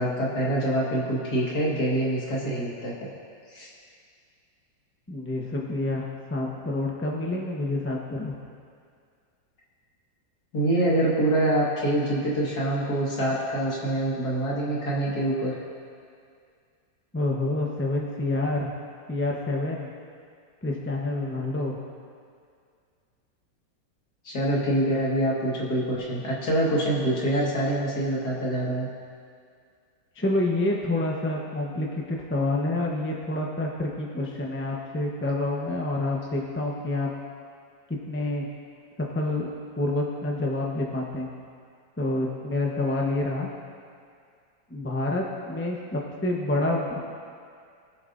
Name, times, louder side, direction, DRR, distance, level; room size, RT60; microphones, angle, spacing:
voice 1, 0.0-3.1 3.5-3.7 10.5-15.5 24.3-28.9, right 1 dB, 55° left, -5 dB, 2.4 m, -25 dB
voice 2, 5.1-8.3 17.1-18.7 19.1-19.9 20.6-21.8 30.1-37.1 38.1-38.5 39.1-39.5 39.8-41.3 42.0-43.5 44.7-47.0, left 2 dB, 10° left, -2 dB, 0.7 m, -28 dB
21.0 x 7.8 x 2.6 m, 2.2 s
omnidirectional pair, 2.1 m